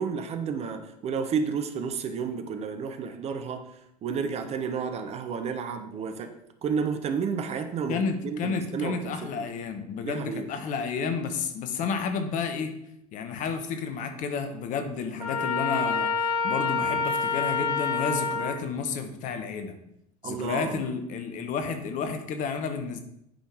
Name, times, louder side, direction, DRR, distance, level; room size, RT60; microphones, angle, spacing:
voice 1, 0.0-3.6 4.0-6.3 6.6-9.1 10.0-10.5 20.2-20.8, right 6 dB, 30° right, 8 dB, 0.9 m, -31 dB
voice 2, 7.9-12.7 13.1-19.7 20.2-23.0, left 5 dB, 40° left, 8 dB, 1.1 m, -31 dB
Trumpet, 15.2-18.6, left 4 dB, 75° right, 2.0 m, -27 dB
8.8 x 5.6 x 4.8 m, 0.78 s
figure-of-eight pair, 70°, 20 cm